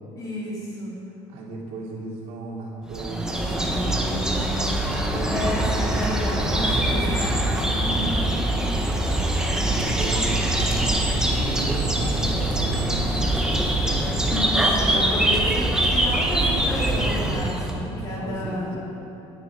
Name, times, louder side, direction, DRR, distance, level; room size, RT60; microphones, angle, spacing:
voice 1, 0.2-0.9 5.3-7.3 7.7-8.3 13.9-18.7, left 1 dB, 30° left, -5 dB, 3.8 m, -31 dB
voice 2, 1.3-3.5 4.8-5.5 6.2-7.0 7.5-8.6 9.3-13.2 17.8-18.8, right 2 dB, 65° right, -3 dB, 3.0 m, -35 dB
sound 1, 2.9-17.8, right 1 dB, 5° right, 1.2 m, -23 dB
18.5 x 9.9 x 4.9 m, 2.9 s
cardioid pair, 155°, 12 cm